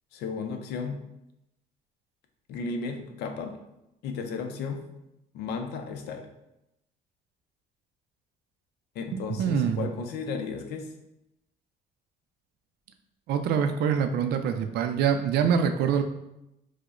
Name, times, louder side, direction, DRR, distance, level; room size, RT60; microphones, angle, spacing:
voice 1, 0.1-1.0 2.5-3.5 4.0-4.8 5.3-6.3 8.9-10.9, left 4 dB, 75° left, 5 dB, 0.5 m, -34 dB
voice 2, 9.3-9.8 13.3-16.0, right 7 dB, 70° right, 7 dB, 0.4 m, -25 dB
4.7 x 2.1 x 2.4 m, 0.87 s
cardioid pair, 110°, 17 cm